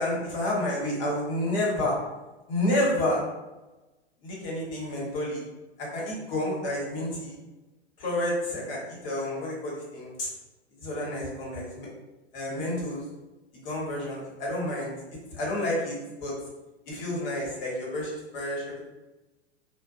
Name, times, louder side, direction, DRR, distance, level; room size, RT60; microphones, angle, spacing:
voice 1, 0.0-1.9 2.5-3.2 4.2-5.4 5.8-7.4 8.0-10.3 10.8-11.9 12.3-13.0 13.6-14.9 15.3-16.3 16.9-18.9, left 1 dB, 55° left, -4 dB, 1.2 m, -30 dB
2.6 x 2.3 x 2.4 m, 1.1 s
figure-of-eight pair, 100°, 33 cm